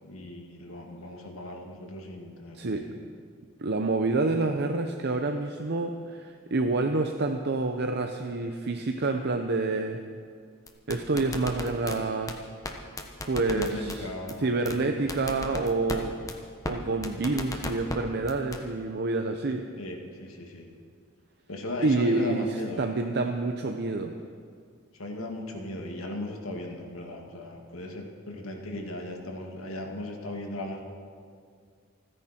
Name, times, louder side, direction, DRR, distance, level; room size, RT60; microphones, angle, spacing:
voice 1, 0.0-2.9 13.5-14.8 19.8-20.7 21.5-22.9 24.9-30.8, left 1 dB, 90° left, 1 dB, 2.2 m, -37 dB
voice 2, 3.6-10.0 10.9-12.4 13.2-14.0 14.4-16.2 16.7-19.6 21.8-22.4 22.8-24.1, right 3 dB, 55° right, 5 dB, 0.8 m, -28 dB
sound 1, 10.7-12.0 12.3-12.4 12.6-12.7 13.0-14.0 14.3-14.4 14.7-14.8 15.1-16.0 16.3-16.4 16.6-16.7 17.0-18.0 18.3-18.6, left 2 dB, 15° left, 1.1 m, -34 dB
28.5 x 10.0 x 4.4 m, 2.1 s
head